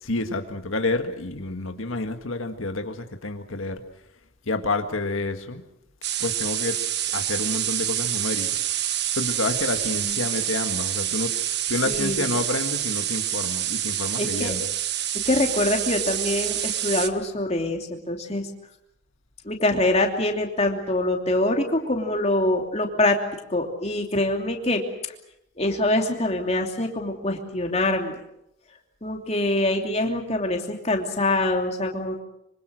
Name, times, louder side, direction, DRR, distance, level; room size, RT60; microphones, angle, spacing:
voice 1, 0.0-3.8 4.5-5.6 6.2-6.8 7.1-8.6 9.2-11.4 11.7-14.7, left 2 dB, 80° left, 6 dB, 1.8 m, -29 dB
sound 1, 6.0-17.1, right 11 dB, 55° right, 1.4 m, -27 dB
voice 2, 11.9-12.2 14.2-14.6 15.2-18.5 19.4-23.2 23.5-24.8 25.6-28.2 29.0-32.2, left 1 dB, 30° left, 2 dB, 3.0 m, -24 dB
25.5 x 25.0 x 6.4 m, 0.83 s
head